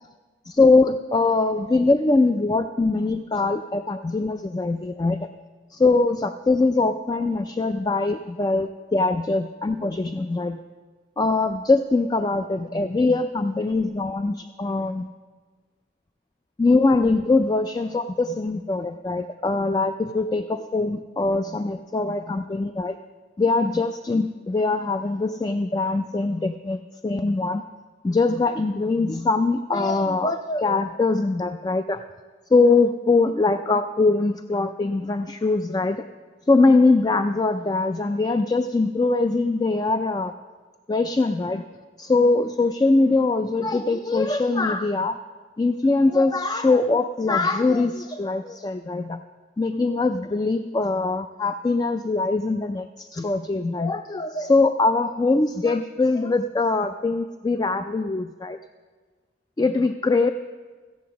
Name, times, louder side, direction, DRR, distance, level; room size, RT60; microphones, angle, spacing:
voice 1, 0.5-5.3 5.7-10.6 11.2-15.1 16.6-23.0 23.4-27.6 28.0-32.0 32.5-36.0 36.5-40.3 40.9-41.6 42.0-45.2 45.6-49.2 49.6-58.6 59.6-60.3, left 3 dB, 20° left, 9 dB, 0.3 m, -22 dB
15.0 x 8.4 x 6.9 m, 1.4 s
head